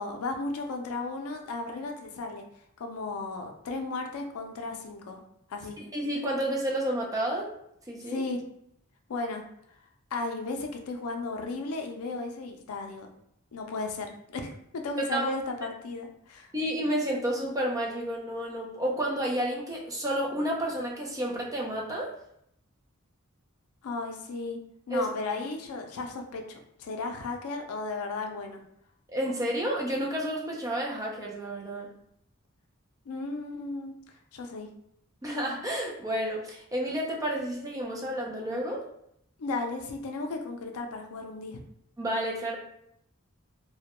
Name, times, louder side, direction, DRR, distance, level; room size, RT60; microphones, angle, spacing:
voice 1, 0.0-2.4 2.8-5.2 5.5-5.8 8.0-8.4 9.1-9.4 10.1-13.1 13.5-16.5 23.8-24.6 24.9-28.6 33.1-33.9 34.3-34.7 39.4-41.6, left 3 dB, 85° left, 4 dB, 0.4 m, -35 dB
voice 2, 5.8-7.5 7.9-8.2 15.1-15.3 16.5-22.1 24.9-25.1 29.1-31.9 35.2-38.8 42.0-42.6, right 1 dB, 15° right, -2 dB, 0.4 m, -30 dB
2.2 x 2.1 x 2.9 m, 0.73 s
head